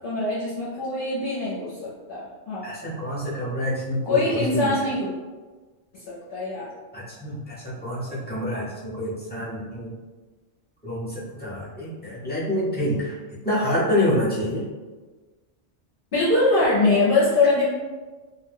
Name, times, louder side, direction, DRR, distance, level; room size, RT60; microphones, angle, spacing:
voice 1, 0.0-2.7 4.0-5.1 5.9-6.7 16.1-17.7, left 2 dB, 55° left, -8 dB, 0.8 m, -23 dB
voice 2, 2.6-4.7 6.9-9.9 10.8-13.2 13.4-14.6, left 1 dB, 10° left, -9 dB, 0.7 m, -27 dB
2.4 x 2.2 x 3.3 m, 1.3 s
omnidirectional pair, 1.2 m